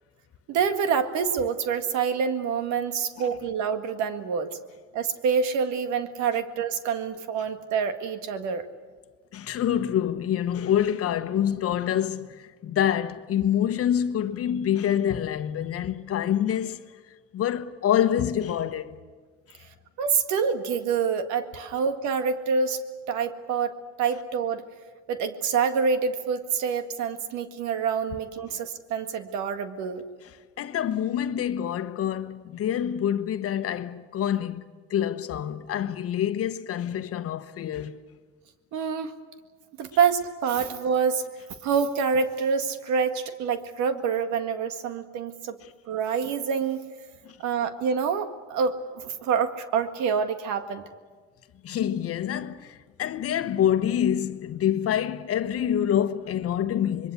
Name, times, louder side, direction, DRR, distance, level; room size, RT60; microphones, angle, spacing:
voice 1, 0.5-4.5 4.9-8.7 20.0-22.8 23.1-24.6 25.1-30.0 38.7-39.1 39.8-41.2 41.6-45.6 45.9-46.8 47.4-50.8, right 6 dB, 70° right, 2.0 m, -26 dB
voice 2, 9.3-16.9 17.3-19.0 19.5-19.6 28.5-28.6 30.6-38.0 45.6-45.7 47.2-47.4 51.6-57.1, left 10 dB, 50° left, 1.1 m, -26 dB
26.0 x 22.0 x 8.3 m
supercardioid pair, 95°, 29 cm